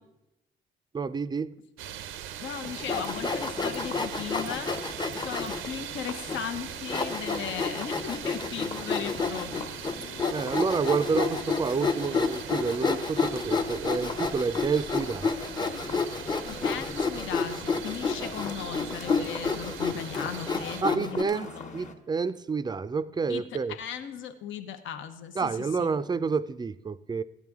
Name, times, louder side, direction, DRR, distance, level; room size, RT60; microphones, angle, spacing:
voice 1, 0.9-1.5 10.3-15.3 20.8-23.8 25.4-27.2, right 5 dB, 20° right, 14 dB, 0.4 m, -29 dB
sound 1, 1.8-20.8, right 10 dB, 85° right, 0.5 m, -41 dB
voice 2, 2.4-4.7 5.2-9.7 16.5-21.8 23.3-25.9, left 8 dB, 75° left, 9 dB, 0.8 m, -37 dB
sound 2, 2.6-21.9, left 3 dB, 35° left, 1.2 m, -44 dB
Sawing, 2.8-5.7 6.3-6.4 6.9-21.2, left 4 dB, 20° left, 0.7 m, -30 dB
14.0 x 9.1 x 3.5 m, 0.93 s
cardioid pair, 90°, 20 cm